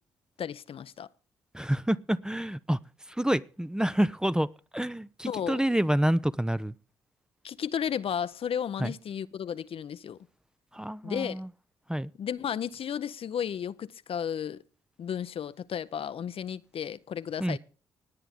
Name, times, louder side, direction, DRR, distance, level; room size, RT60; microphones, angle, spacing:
voice 1, 0.4-1.1 5.2-5.6 7.4-10.2 11.0-11.4 12.2-14.6 15.0-17.6, left 8 dB, 55° left, 0.7 m, -33 dB
voice 2, 1.5-2.8 3.2-6.7 8.8-8.9 10.7-11.5 11.9-12.1 17.4-17.6, right 1 dB, 5° right, 0.6 m, -28 dB
19.5 x 9.1 x 3.6 m
hypercardioid pair, 45°, 11 cm